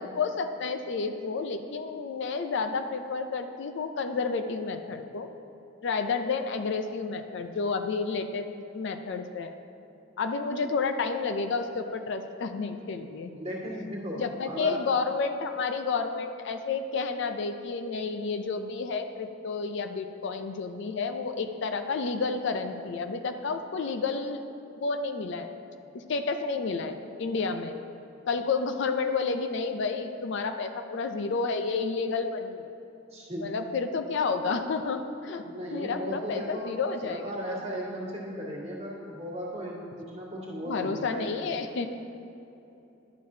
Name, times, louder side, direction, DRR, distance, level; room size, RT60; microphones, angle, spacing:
voice 1, 0.0-5.3 5.8-8.5 8.7-9.5 10.2-13.3 14.2-24.4 24.8-25.5 25.9-27.7 28.3-32.7 33.4-35.4 35.7-37.3 40.7-41.9, left 4 dB, 65° left, 7 dB, 0.4 m, -30 dB
voice 2, 13.3-14.8 33.1-33.5 35.4-41.5, equal, 35° right, -5 dB, 1.6 m, -36 dB
10.5 x 6.6 x 2.7 m, 2.9 s
head